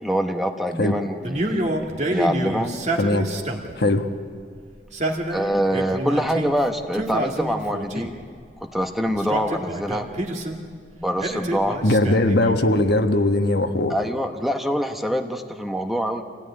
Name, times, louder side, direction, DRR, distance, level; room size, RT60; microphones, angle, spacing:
voice 1, 0.0-1.8 2.1-2.7 5.3-8.1 8.6-10.1 11.0-11.8 13.9-16.2, equal, ahead, 5 dB, 1.0 m, -25 dB
Male speech man speaking, 1.2-3.8 4.8-6.5 6.9-8.2 9.1-10.6 11.2-12.7, right 1 dB, 35° right, 2.1 m, -28 dB
voice 2, 3.0-3.3 3.8-4.1 11.8-13.9, left 1 dB, 60° left, 6 dB, 1.4 m, -19 dB
26.5 x 16.5 x 9.9 m, 2.2 s
head